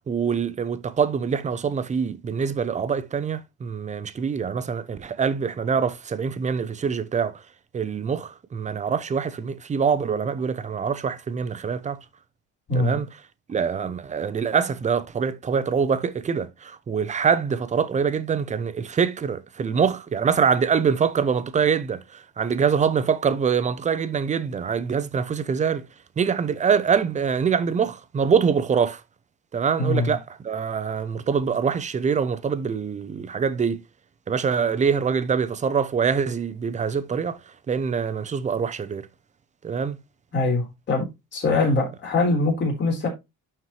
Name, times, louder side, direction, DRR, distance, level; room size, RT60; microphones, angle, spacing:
voice 1, 0.0-7.4 7.7-12.0 12.7-13.1 13.5-25.8 26.2-29.0 29.5-33.8 34.3-37.4 37.7-39.1 39.6-40.0, right 6 dB, 25° right, 0.6 m, -24 dB
voice 2, 12.7-13.0 29.8-30.2 40.3-41.0 41.3-43.1, left 2 dB, 35° left, 3.9 m, -23 dB
11.5 x 4.5 x 3.1 m
cardioid pair, 170°, 31 cm